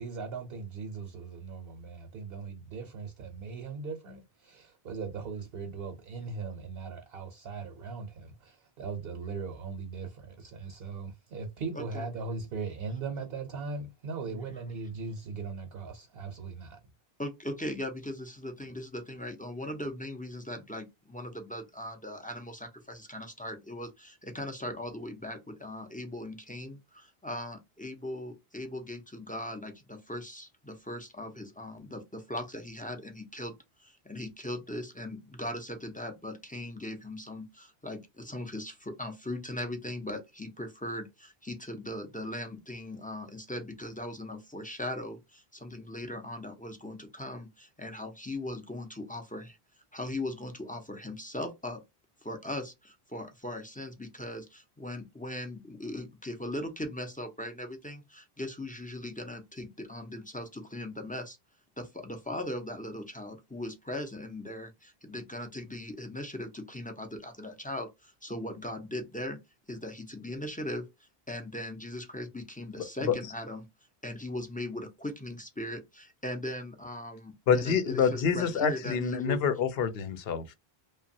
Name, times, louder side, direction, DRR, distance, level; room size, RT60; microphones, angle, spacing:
voice 1, 0.0-16.8, right 4 dB, 70° right, 0.9 m, -39 dB
voice 2, 11.7-12.1 14.3-14.4 17.2-49.6 49.9-51.8 52.2-61.4 61.8-69.4 69.7-70.8 71.3-73.7 74.0-79.4, left 1 dB, 15° left, 0.3 m, -39 dB
voice 3, 72.8-73.1 77.5-80.4, left 6 dB, 70° left, 0.8 m, -27 dB
2.9 x 2.2 x 2.6 m
omnidirectional pair, 1.1 m